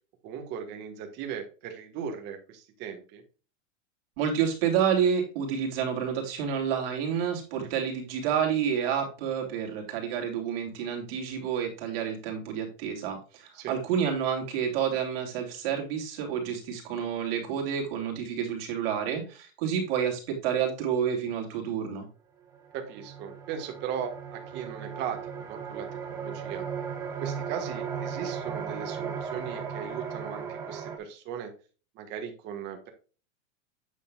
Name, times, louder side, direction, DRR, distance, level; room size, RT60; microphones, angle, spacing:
voice 1, 0.2-3.2 13.5-13.7 22.7-26.7 27.2-31.5 31.9-32.9, right 7 dB, 25° right, 5 dB, 1.5 m, -38 dB
voice 2, 4.2-22.0, right 8 dB, 45° right, 1 dB, 2.9 m, -29 dB
sound 1, 22.0-22.1 22.5-31.0, right 6 dB, 10° right, 0.5 m, -36 dB
8.5 x 6.5 x 2.4 m, 0.35 s
supercardioid pair, 165°, 40 cm